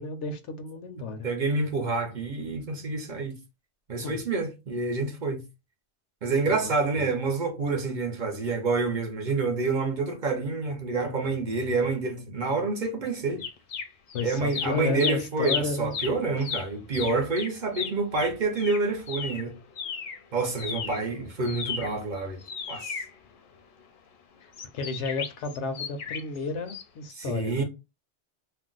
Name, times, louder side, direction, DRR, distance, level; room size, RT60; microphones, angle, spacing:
voice 1, 0.0-1.3 4.0-4.2 6.6-7.1 14.1-15.9 20.8-21.3 24.4-27.6, left 3 dB, 85° left, 0.9 m, -33 dB
voice 2, 1.0-3.4 3.9-5.4 6.2-13.4 14.2-19.5 20.3-22.4 22.7-23.0 27.2-27.6, right 3 dB, 50° right, 0.7 m, -28 dB
sound 1, 13.4-14.2 14.5-20.2 20.5-23.8 24.5-26.4 26.7-26.8, left 6 dB, 60° left, 0.6 m, -35 dB
2.5 x 2.0 x 3.7 m
omnidirectional pair, 1.2 m